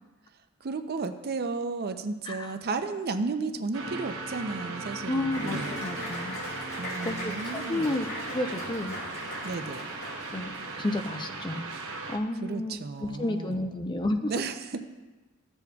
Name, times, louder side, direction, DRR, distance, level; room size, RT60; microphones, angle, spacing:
voice 1, 0.6-6.2 6.8-7.9 9.4-9.9 12.4-13.7 14.3-14.8, right 4 dB, 50° right, 8 dB, 0.5 m, -33 dB
sound 1, 3.7-12.2, right 3 dB, 80° right, 0.9 m, -37 dB
voice 2, 5.1-6.4 7.0-9.0 10.3-11.7 12.1-14.3, left 1 dB, 20° left, 6 dB, 0.5 m, -31 dB
Applause, 5.3-11.0, left 1 dB, 85° left, 3.1 m, -40 dB
14.5 x 7.0 x 2.3 m, 1.2 s
head